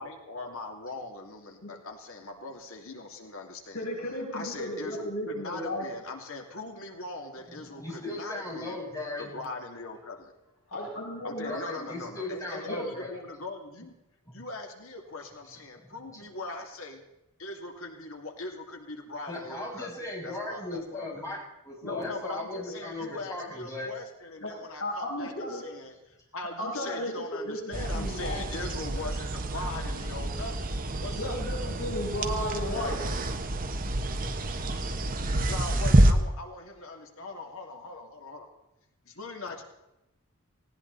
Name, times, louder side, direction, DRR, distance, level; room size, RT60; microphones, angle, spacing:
voice 1, 0.0-3.8 4.3-8.8 9.2-10.3 11.2-13.9 14.3-17.0 17.4-19.9 20.2-21.3 21.8-30.7 31.0-31.4 35.2-38.5 39.1-39.6, left 3 dB, 65° left, 3 dB, 2.6 m, -40 dB
voice 2, 3.7-5.9 10.7-11.6 12.6-12.9 21.8-22.0 22.5-22.7 24.4-24.5 24.8-25.6 26.6-28.6 31.1-33.1, left 1 dB, 80° left, -3 dB, 6.7 m, -34 dB
voice 3, 7.5-9.4 11.5-13.1 14.2-14.3 15.8-16.3 19.2-23.9 32.4-32.8, left 2 dB, 15° left, -4 dB, 6.7 m, -38 dB
sound 1, 27.7-36.1, right 1 dB, 40° right, 1.4 m, -28 dB
19.0 x 17.5 x 4.1 m, 0.91 s
head